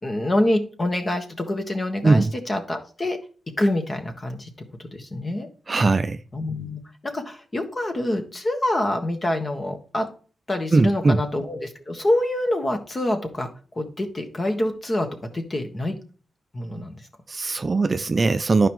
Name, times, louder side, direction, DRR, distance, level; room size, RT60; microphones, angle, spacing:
voice 1, 0.0-3.2 3.6-4.5 4.9-5.5 6.3-10.1 10.5-13.5 13.7-15.1 15.3-16.0 16.5-17.0, left 1 dB, 30° left, 1.4 m, -26 dB
voice 2, 5.7-6.2 10.7-11.2 17.3-18.7, right 3 dB, 30° right, 0.4 m, -20 dB
11.5 x 5.0 x 3.1 m
cardioid pair, 105°, 0 cm